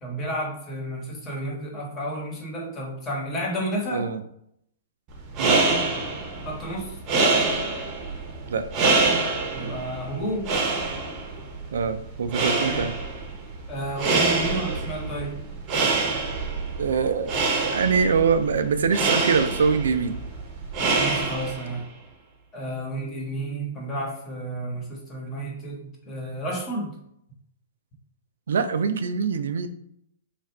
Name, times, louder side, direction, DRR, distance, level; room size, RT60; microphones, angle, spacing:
voice 1, 0.0-4.1 6.4-7.0 9.5-10.5 12.7-12.8 13.7-15.4 20.9-21.8 22.5-27.0, right 1 dB, 20° left, -1 dB, 1.1 m, -31 dB
voice 2, 3.9-4.2 5.4-5.6 8.5-8.7 11.7-12.9 16.8-20.2 28.5-29.7, right 5 dB, 85° right, 9 dB, 0.4 m, -24 dB
sound 1, 5.1-21.8, right 3 dB, 30° right, 0.8 m, -26 dB
3.2 x 2.5 x 4.2 m, 0.73 s
hypercardioid pair, 150°, 0 cm